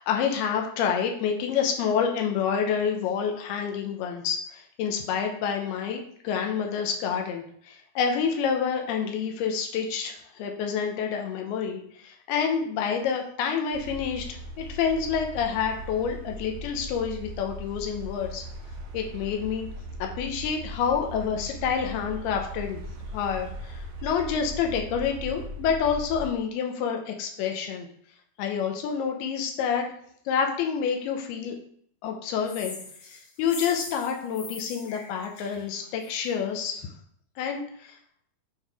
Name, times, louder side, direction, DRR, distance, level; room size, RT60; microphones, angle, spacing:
voice 1, 0.0-18.4 18.9-19.7 20.0-22.8 23.1-27.9 28.4-29.9 30.3-31.6 32.0-32.8 33.1-36.9 37.4-38.0, left 7 dB, 85° left, 2 dB, 2.8 m, -28 dB
sound 1, 13.7-26.3, equal, 85° right, 1.5 m, -39 dB
sound 2, 32.5-36.3, left 4 dB, 70° left, 3.2 m, -41 dB
8.6 x 3.7 x 4.7 m, 0.64 s
omnidirectional pair, 4.4 m